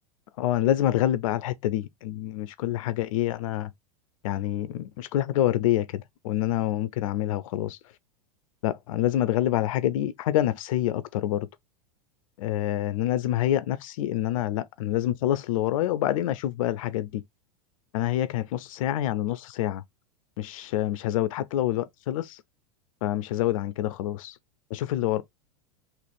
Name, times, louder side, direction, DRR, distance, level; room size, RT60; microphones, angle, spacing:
voice 1, 0.4-3.7 4.2-7.8 8.6-11.5 12.4-17.2 17.9-19.8 20.4-22.4 23.0-24.4 24.7-25.2, left 13 dB, 60° left, 0.5 m, -27 dB
3.9 x 2.5 x 3.3 m
hypercardioid pair, 95°, 19 cm